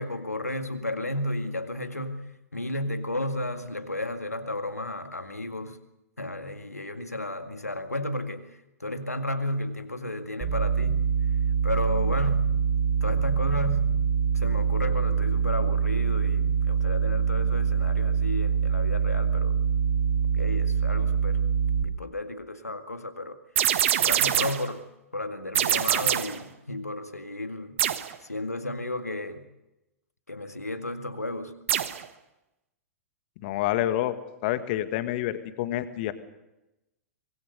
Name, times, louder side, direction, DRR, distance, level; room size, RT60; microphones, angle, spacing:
voice 1, 0.0-5.8 6.2-11.1 11.6-12.6 13.0-14.0 14.3-19.6 20.3-21.4 21.8-23.4 24.0-24.8 25.1-27.8 28.2-29.5 30.3-31.5, left 1 dB, 85° left, 8 dB, 2.0 m, -33 dB
sound 1, 10.4-21.8, right 6 dB, 30° right, 5.7 m, -24 dB
sound 2, 23.6-24.7 25.5-26.4 27.8-28.1 31.7-32.0, right 11 dB, 55° right, 1.3 m, -24 dB
voice 2, 33.4-34.2 34.4-36.1, left 13 dB, 45° left, 11 dB, 1.8 m, -28 dB
25.0 x 20.5 x 6.8 m, 0.95 s
figure-of-eight pair, 100°, 8 cm